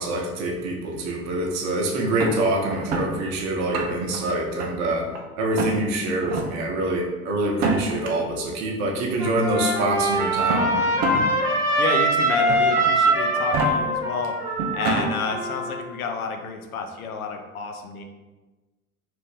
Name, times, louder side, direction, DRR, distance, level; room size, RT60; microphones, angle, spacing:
voice 1, 0.0-10.8, right 1 dB, 40° right, 0 dB, 0.7 m, -25 dB
sound 1, 2.2-3.1 3.6-4.2 4.6-5.2 5.5-5.7 6.2-6.5 7.5-8.1 9.1-9.2 10.3-11.3 11.7-11.8 12.5-12.8 13.4-13.7 14.2-14.3 14.6-15.1, right 3 dB, 25° right, 0.3 m, -26 dB
Trumpet, 9.2-15.8, right 1 dB, 5° right, 0.7 m, -23 dB
voice 2, 11.8-14.3 14.7-18.0, left 5 dB, 75° left, 3 dB, 0.6 m, -30 dB
2.8 x 2.5 x 3.6 m, 1.2 s
figure-of-eight pair, 75°, 44 cm